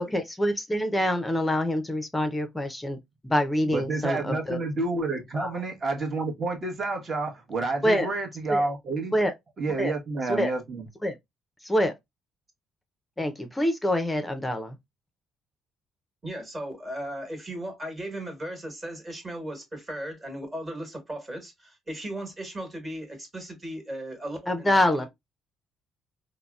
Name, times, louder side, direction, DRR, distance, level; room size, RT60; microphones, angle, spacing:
voice 1, 0.0-3.0 3.2-4.6 5.3-5.5 7.8-8.1 8.5-8.7 9.1-9.3 9.8-9.9 10.3-10.5 11.0-11.1 11.6-11.9 13.2-14.8 24.5-25.1, left 1 dB, 10° left, 0.5 m, -26 dB
voice 2, 3.7-9.1 9.6-10.9, right 3 dB, 40° right, 1.0 m, -29 dB
voice 3, 16.2-25.1, right 1 dB, 25° right, 1.3 m, -37 dB
3.8 x 2.0 x 2.3 m
cardioid pair, 120°, 0 cm